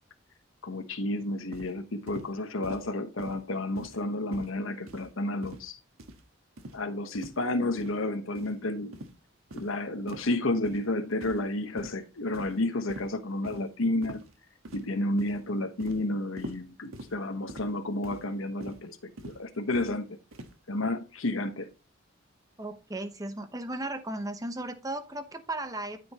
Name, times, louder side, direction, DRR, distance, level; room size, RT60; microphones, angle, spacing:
voice 1, 0.6-5.8 6.7-8.9 9.5-14.2 14.7-20.2 20.7-21.7, left 2 dB, 75° left, 1.1 m, -31 dB
sound 1, 1.5-1.7 2.1-2.3 2.6-2.9 3.2-3.4 3.8-4.0 4.3-4.5 4.9-5.1 5.4-5.7 6.0-6.2 6.6-6.8 7.1-7.4 7.8-8.0 8.3-8.5 8.9-9.1 9.5-9.7 10.1-10.3 10.6-10.8 11.2-11.5 11.8-12.0 12.3-12.6 12.9-13.1 13.4-13.6 14.0-14.3 14.6-14.9 15.2-15.4 15.8-16.0 16.4-16.6 16.9-17.1 17.5-17.7 18.0-18.3 18.6-18.8 19.2-19.4 19.7-19.9 20.3-20.5, right 1 dB, 85° right, 1.4 m, -43 dB
voice 2, 22.6-26.0, right 1 dB, 15° right, 0.9 m, -36 dB
13.0 x 5.2 x 2.9 m
head